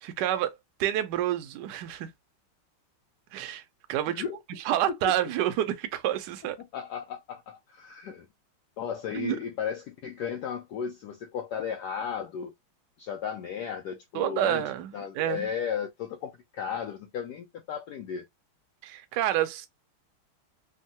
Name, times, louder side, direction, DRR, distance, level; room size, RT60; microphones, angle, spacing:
voice 1, 0.0-2.1 3.3-3.6 3.9-4.2 4.7-6.6 9.1-9.4 14.1-15.5 18.8-19.7, right 12 dB, 75° right, 1.0 m, -28 dB
voice 2, 4.1-4.4 6.7-8.3 8.8-12.5 13.0-14.6 14.9-18.2, left 7 dB, 90° left, 0.8 m, -35 dB
3.6 x 2.1 x 2.7 m
omnidirectional pair, 2.3 m